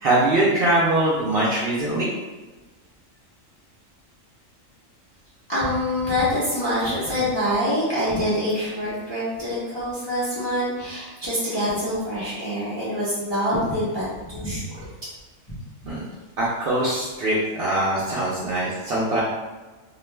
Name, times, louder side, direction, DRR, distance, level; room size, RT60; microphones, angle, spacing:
voice 1, 0.0-2.1 15.8-16.0 16.4-19.2, right 1 dB, 60° right, -6 dB, 0.6 m, -22 dB
voice 2, 5.5-14.6 15.5-15.6, equal, 30° left, -10 dB, 0.5 m, -25 dB
2.4 x 2.1 x 3.1 m, 1.2 s
omnidirectional pair, 1.4 m